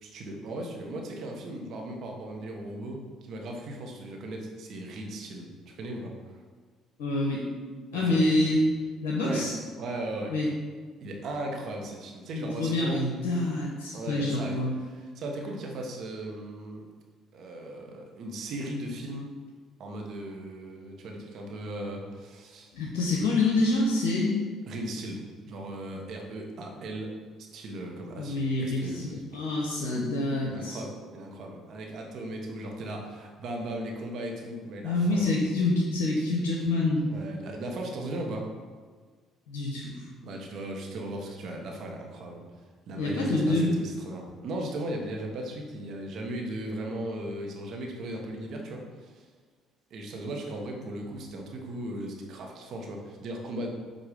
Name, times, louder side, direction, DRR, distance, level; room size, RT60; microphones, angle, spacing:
voice 1, 0.0-6.1 8.0-8.2 8.5-8.6 9.2-9.5 9.8-10.3 11.0-13.0 13.9-14.6 15.1-16.8 17.3-19.3 19.8-22.7 24.7-27.1 27.4-29.4 30.4-35.3 37.1-38.5 40.2-42.6 42.9-49.2 49.9-53.7, right 1 dB, 60° right, 1 dB, 1.1 m, -37 dB
voice 2, 7.0-7.4 7.9-8.6 9.0-9.6 10.3-10.5 12.3-14.7 22.7-24.4 28.2-30.8 34.8-37.1 39.5-40.1 43.0-43.7, left 2 dB, 80° left, -1 dB, 0.8 m, -27 dB
7.5 x 2.7 x 5.0 m, 1.5 s
hypercardioid pair, 60°, 0 cm